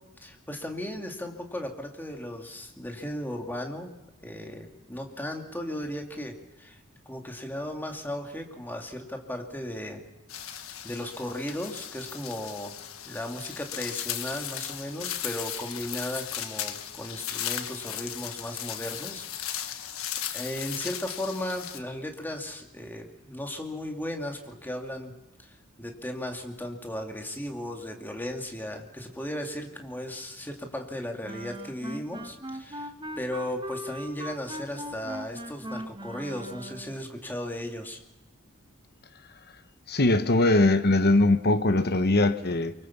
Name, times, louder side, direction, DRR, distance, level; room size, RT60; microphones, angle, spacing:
voice 1, 0.2-3.9 4.2-6.8 7.1-10.0 10.8-12.8 13.0-19.8 20.3-25.1 25.4-32.9 33.2-38.0, left 1 dB, 10° left, 2.3 m, -36 dB
sound 1, 10.3-21.8, left 10 dB, 70° left, 1.6 m, -36 dB
Wind instrument woodwind instrument, 31.2-37.0, equal, 20° right, 1.3 m, -39 dB
voice 2, 39.9-42.7, left 2 dB, 50° left, 1.1 m, -21 dB
24.5 x 23.5 x 7.2 m
head